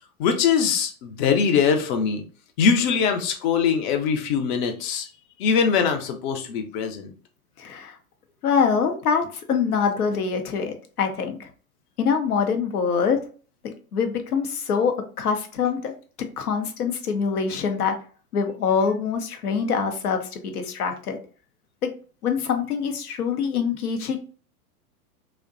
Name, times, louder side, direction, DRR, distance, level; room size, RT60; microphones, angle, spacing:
voice 1, 0.2-2.2 2.6-5.1 5.4-7.1, left 6 dB, 35° left, 6 dB, 0.4 m, -22 dB
voice 2, 7.6-8.0 8.4-11.5 12.0-13.2 13.6-15.9 16.4-18.0 18.3-21.2 21.8-21.9 22.2-24.2, left 6 dB, 85° left, 6 dB, 0.7 m, -24 dB
2.6 x 2.1 x 2.4 m, 0.40 s
hypercardioid pair, 110°, 44 cm